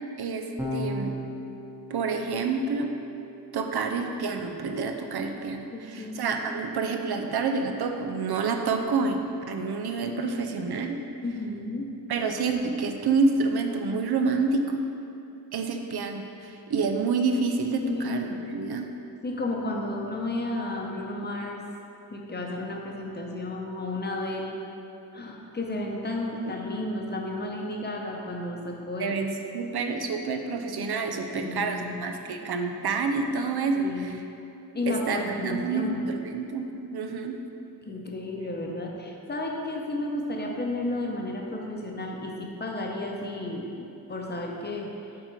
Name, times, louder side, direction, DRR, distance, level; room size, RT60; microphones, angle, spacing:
voice 1, 0.2-1.1 1.9-2.9 3.5-11.0 12.1-14.8 15.5-18.9 29.0-34.2 34.9-37.4, right 4 dB, 70° right, 4 dB, 0.6 m, -28 dB
Electric guitar / Bass guitar, 0.6-7.0, left 1 dB, 5° right, 0.8 m, -39 dB
voice 2, 5.7-6.2 11.2-11.9 17.8-18.3 19.2-21.6 22.1-24.6 25.1-29.3 31.3-32.0 32.3-32.4 33.7-34.2 34.7-36.0 37.8-44.9, left 2 dB, 25° left, 0 dB, 0.8 m, -32 dB
8.5 x 3.9 x 4.6 m, 2.7 s
wide cardioid pair, 150°, 40 cm